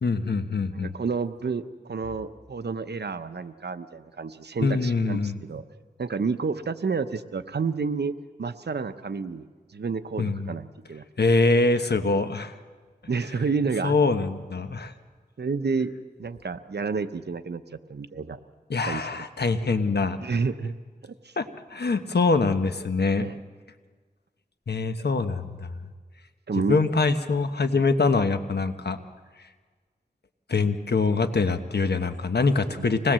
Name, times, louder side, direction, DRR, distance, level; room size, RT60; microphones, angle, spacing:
voice 1, 0.0-0.9 4.6-5.4 10.2-10.5 11.2-12.6 13.8-14.9 18.7-20.2 21.4-23.3 24.7-25.7 26.7-29.0 30.5-33.1, left 3 dB, 75° left, 8 dB, 1.2 m, -24 dB
voice 2, 0.7-5.6 6.0-8.1 8.4-11.0 13.1-13.9 15.4-15.9 16.2-17.6 17.9-18.4 18.9-19.1 20.2-20.8 21.0-21.3 23.2-23.4 26.5-26.8 27.7-27.8 32.6-33.0, right 4 dB, 80° right, 11 dB, 0.9 m, -30 dB
25.5 x 19.0 x 7.6 m, 1.5 s
wide cardioid pair, 60°, 17 cm